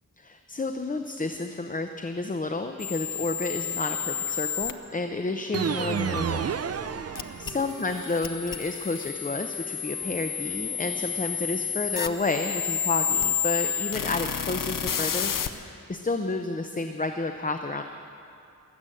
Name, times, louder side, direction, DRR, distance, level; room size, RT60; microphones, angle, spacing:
voice 1, 0.2-6.5 7.4-17.8, left 3 dB, 25° left, 6 dB, 0.6 m, -31 dB
sound 1, 2.8-4.7 7.2-15.5, left 7 dB, 80° left, 0.7 m, -30 dB
Wind instrument woodwind instrument, 5.0-12.9, left 1 dB, 5° left, 3.6 m, -51 dB
sound 2, 5.5-7.9, right 7 dB, 50° right, 0.5 m, -30 dB
22.5 x 8.0 x 7.8 m, 2.5 s
wide cardioid pair, 95°, 32 cm